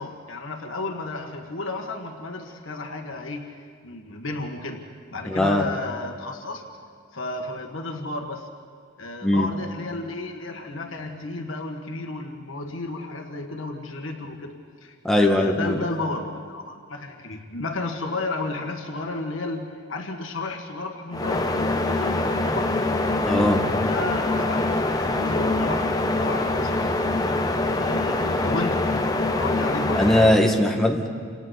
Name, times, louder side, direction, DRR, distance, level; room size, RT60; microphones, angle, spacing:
voice 1, 0.0-4.8 5.1-6.6 7.1-8.5 9.0-14.6 14.8-22.8 23.8-26.9 27.7-28.8 29.3-30.0, left 2 dB, 85° left, 3 dB, 1.7 m, -32 dB
voice 2, 5.3-5.6 9.2-9.5 15.0-15.8 23.2-23.6 30.0-31.1, left 1 dB, ahead, 1 dB, 1.7 m, -20 dB
sound 1, 21.1-30.4, left 2 dB, 20° left, 1.1 m, -24 dB
29.5 x 27.0 x 4.1 m, 2.1 s
head